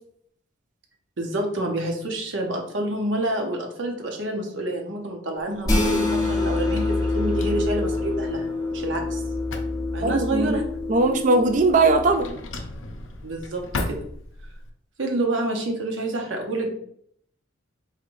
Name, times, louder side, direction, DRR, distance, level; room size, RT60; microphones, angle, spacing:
voice 1, 1.2-9.2 9.9-10.7 13.2-14.0 15.0-16.7, right 1 dB, 65° right, 2 dB, 0.8 m, -28 dB
Drawer open or close, 5.3-14.7, left 2 dB, 75° left, 0.6 m, -39 dB
sound 1, 5.6-12.1, left 2 dB, 20° left, 1.1 m, -26 dB
voice 2, 10.0-10.6 10.9-12.3, right 3 dB, 40° right, 6 dB, 0.3 m, -20 dB
4.2 x 3.2 x 2.6 m, 0.66 s
head